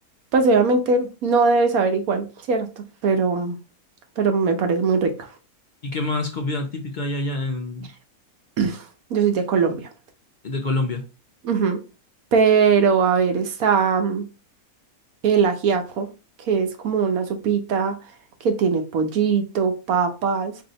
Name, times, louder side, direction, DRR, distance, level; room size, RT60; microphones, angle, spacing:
voice 1, 0.3-3.6 4.2-5.3 8.6-8.8 9.1-9.9 11.4-11.8 12.3-14.2 15.2-16.1 16.4-18.0 18.4-20.5, right 5 dB, 75° right, 1.3 m, -21 dB
voice 2, 5.8-7.9 10.4-11.1, left 2 dB, 70° left, 0.4 m, -26 dB
4.8 x 2.7 x 3.9 m
omnidirectional pair, 1.5 m